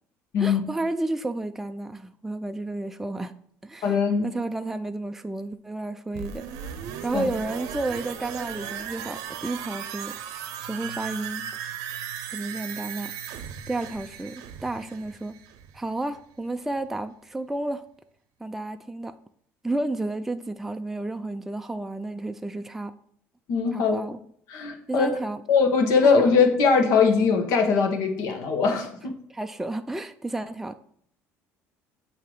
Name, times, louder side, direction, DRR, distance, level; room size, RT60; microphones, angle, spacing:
voice 1, 0.4-3.4 3.6-4.0 4.2-6.5 7.0-10.2 10.6-11.5 12.3-13.1 13.7-15.3 15.7-17.8 18.4-19.1 19.6-22.9 23.7-24.2 24.9-25.4 26.0-26.2 29.3-30.8, right 2 dB, 5° right, 8 dB, 0.3 m, -31 dB
voice 2, 3.8-4.3 7.1-7.3 23.5-23.9 24.5-25.2 25.5-29.1, left 5 dB, 70° left, 4 dB, 1.1 m, -21 dB
sound 1, 6.1-15.9 16.2-16.3, right 9 dB, 80° right, 0.6 m, -36 dB
7.5 x 2.8 x 4.8 m, 0.65 s
cardioid pair, 105°, 6 cm